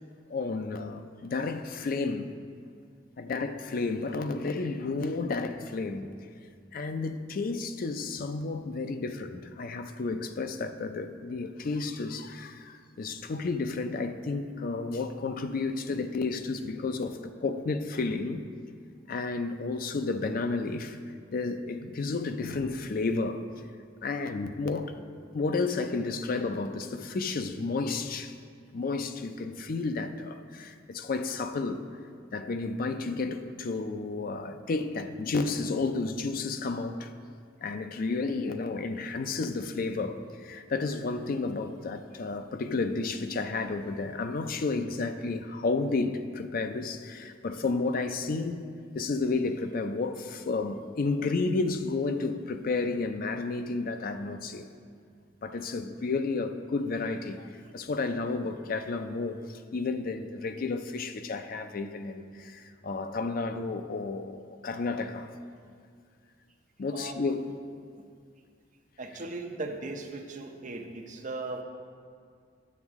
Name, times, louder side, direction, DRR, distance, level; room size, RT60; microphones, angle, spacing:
voice 1, 0.3-2.3 3.2-6.1 6.7-18.4 19.1-21.0 21.3-23.4 24.0-24.9 25.3-28.3 28.7-31.9 32.3-37.1 37.6-48.7 48.9-54.7 55.4-65.3 66.8-67.5, left 3 dB, 50° left, 0.4 m, -32 dB
voice 2, 69.0-71.6, right 2 dB, 40° right, 0.7 m, -37 dB
9.2 x 7.1 x 3.5 m
head